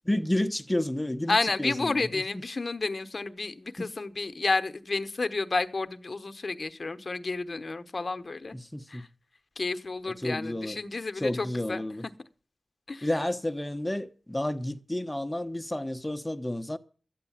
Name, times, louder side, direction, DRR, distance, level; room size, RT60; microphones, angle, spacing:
voice 1, 0.1-2.2 3.8-3.9 8.5-9.0 10.2-10.8 11.1-12.0 13.0-16.8, left 1 dB, 10° left, 1.0 m, -31 dB
voice 2, 1.3-8.5 8.9-9.1 9.6-11.8 12.9-13.1, left 3 dB, 50° left, 1.0 m, -31 dB
13.0 x 9.2 x 7.3 m
wide cardioid pair, 90°, 0 cm